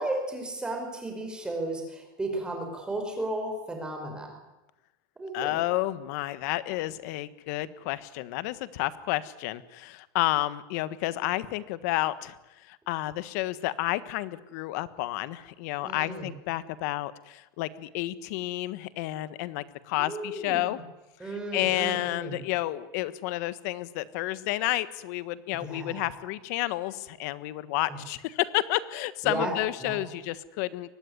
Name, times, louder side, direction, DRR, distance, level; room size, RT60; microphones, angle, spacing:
voice 1, 0.0-4.3 5.2-5.6 15.8-16.3 19.9-20.8 21.2-22.4 25.5-26.1 29.2-29.5 29.8-30.0, right 1 dB, 5° right, 3 dB, 5.4 m, -34 dB
voice 2, 5.3-12.4 12.7-20.8 21.2-30.9, left 17 dB, 50° left, 15 dB, 1.5 m, -31 dB
24.0 x 19.5 x 9.8 m, 1.0 s
supercardioid pair, 165°, 11 cm